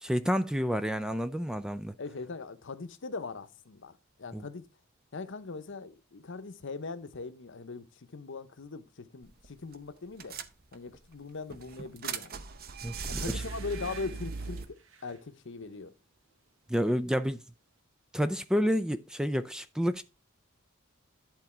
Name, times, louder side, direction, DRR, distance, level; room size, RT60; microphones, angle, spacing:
voice 1, 0.0-1.9 4.3-4.4 12.8-13.4 16.7-17.4 18.1-20.0, equal, 5° right, 0.3 m, -29 dB
voice 2, 2.0-4.7 5.1-10.4 10.7-12.4 13.1-14.7 15.0-15.9, left 4 dB, 65° left, 0.8 m, -40 dB
sound 1, 9.2-9.5 9.7-9.8 10.2-11.0 11.5-14.7, right 4 dB, 50° right, 0.7 m, -38 dB
sound 2, 12.9-15.3 15.7-15.9 16.3-17.0 17.3-17.4, right 6 dB, 70° right, 1.2 m, -52 dB
11.0 x 4.0 x 4.4 m
head